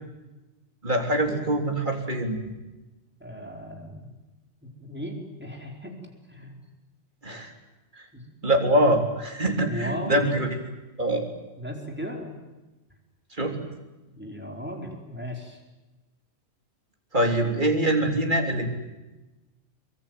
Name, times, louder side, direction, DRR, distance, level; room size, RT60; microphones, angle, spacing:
voice 1, 0.8-2.4 7.2-7.5 7.9-8.1 8.4-10.6 11.0-11.3 13.3-13.6 17.1-18.7, right 1 dB, 40° right, 3 dB, 3.8 m, -24 dB
voice 2, 3.2-4.2 4.6-5.9 6.3-6.5 8.1-8.3 9.6-10.2 11.6-12.4 14.1-15.6, equal, 10° right, 1 dB, 4.7 m, -36 dB
23.5 x 23.5 x 9.5 m, 1.1 s
omnidirectional pair, 1.2 m